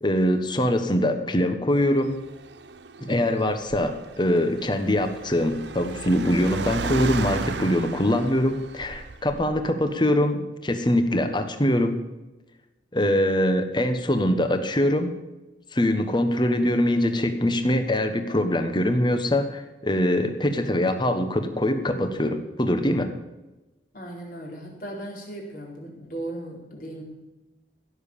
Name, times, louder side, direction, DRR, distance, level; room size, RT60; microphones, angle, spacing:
voice 1, 0.0-2.2 3.0-12.0 12.9-15.2 15.7-23.1, left 1 dB, 25° left, 8 dB, 1.2 m, -23 dB
Car, 1.8-9.8, right 4 dB, 80° right, 0.8 m, -35 dB
voice 2, 23.9-27.0, right 1 dB, 50° left, -2 dB, 4.4 m, -37 dB
16.0 x 7.3 x 8.6 m, 1.1 s
head